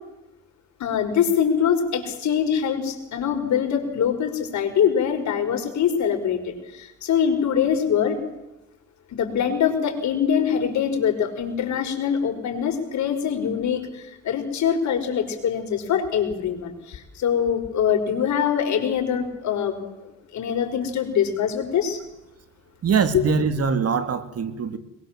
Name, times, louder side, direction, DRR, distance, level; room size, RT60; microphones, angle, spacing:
voice 1, 0.8-8.2 9.1-22.0 23.1-23.2, left 8 dB, 70° left, 4 dB, 5.5 m, -23 dB
voice 2, 22.8-24.8, right 6 dB, 55° right, 9 dB, 2.5 m, -23 dB
24.0 x 22.0 x 7.6 m, 0.94 s
cardioid pair, 90°, 30 cm